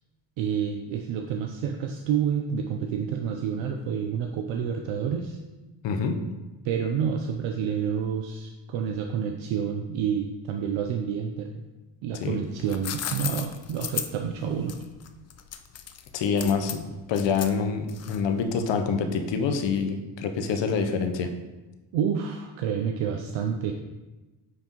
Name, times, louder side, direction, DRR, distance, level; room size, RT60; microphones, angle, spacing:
voice 1, 0.4-5.4 6.6-11.6 12.0-14.8 21.9-23.7, right 7 dB, 75° right, 4 dB, 0.6 m, -29 dB
voice 2, 5.8-6.2 12.2-12.4 16.1-21.3, left 5 dB, 65° left, 6 dB, 0.8 m, -26 dB
sound 1, 12.4-18.4, left 9 dB, 35° left, 0.4 m, -35 dB
9.3 x 3.5 x 3.0 m, 1.1 s
cardioid pair, 85°, 47 cm